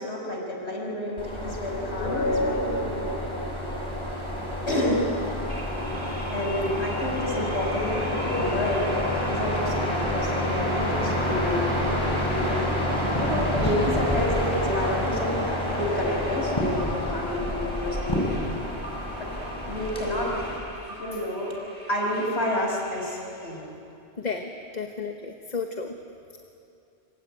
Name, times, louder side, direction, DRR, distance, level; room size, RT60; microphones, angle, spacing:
voice 1, 0.0-3.1 4.7-5.0 6.3-12.7 13.2-15.4 15.8-18.2 19.7-20.3 21.0-21.5 21.9-23.6, left 1 dB, 85° left, -1 dB, 6.1 m, -29 dB
sound 1, 1.2-20.6, left 1 dB, 25° left, 6.6 m, -28 dB
sound 2, 2.0-4.7, equal, 60° left, 2.8 m, -30 dB
sound 3, 3.9-23.7, right 1 dB, 20° right, 4.8 m, -44 dB
voice 2, 24.2-26.0, left 4 dB, 40° left, 4 dB, 1.4 m, -33 dB
26.5 x 24.0 x 9.1 m, 2.7 s
omnidirectional pair, 1.1 m